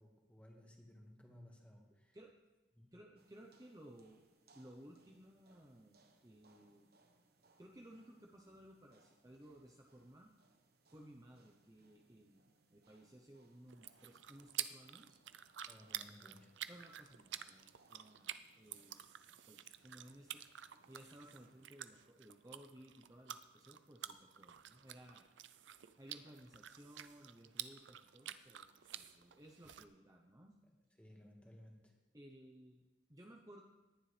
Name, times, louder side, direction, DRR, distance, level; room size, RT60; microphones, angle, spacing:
voice 1, 0.0-2.2 2.7-2.9 15.7-16.7 30.6-30.7 31.0-32.0, left 1 dB, 5° left, 0 dB, 1.8 m, -60 dB
voice 2, 2.9-4.2 4.5-6.9 7.6-10.3 10.9-15.2 16.7-19.0 19.5-25.3 26.0-30.6 32.1-33.6, right 1 dB, 20° right, 0 dB, 0.8 m, -59 dB
sound 1, 3.2-21.8, right 3 dB, 55° right, 1.3 m, -73 dB
sound 2, 13.7-29.8, right 11 dB, 85° right, 0.5 m, -50 dB
19.0 x 11.0 x 3.4 m, 1.1 s
head